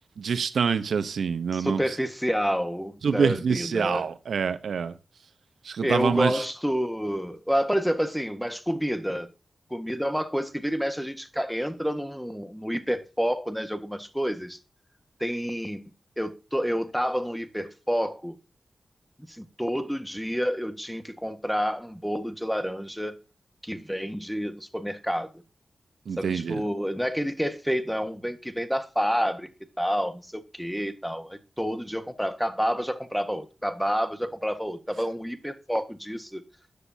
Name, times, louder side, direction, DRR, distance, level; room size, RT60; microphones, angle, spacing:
voice 1, 0.2-2.0 3.0-5.0 5.6-6.4 26.1-26.6, right 6 dB, 85° right, 0.8 m, -26 dB
voice 2, 1.5-4.1 5.8-9.3 9.7-14.6 15.2-15.8 16.2-18.4 19.3-23.2 23.6-25.3 26.2-29.5 29.8-36.4, equal, ahead, 1.5 m, -29 dB
13.5 x 9.9 x 2.8 m
cardioid pair, 60°, 0 cm